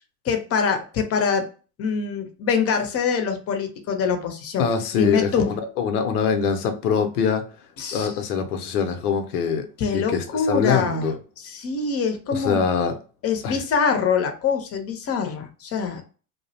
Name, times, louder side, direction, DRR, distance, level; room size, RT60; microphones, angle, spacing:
voice 1, 0.2-1.5 1.8-4.7 4.9-5.5 7.8-8.2 9.8-12.6 13.2-16.0, left 5 dB, 35° left, 6 dB, 0.6 m, -24 dB
voice 2, 4.6-7.4 7.9-11.2 12.3-12.9 13.4-13.6, left 6 dB, 85° left, 7 dB, 0.7 m, -23 dB
2.3 x 2.0 x 2.7 m, 0.37 s
hypercardioid pair, 95°, 44 cm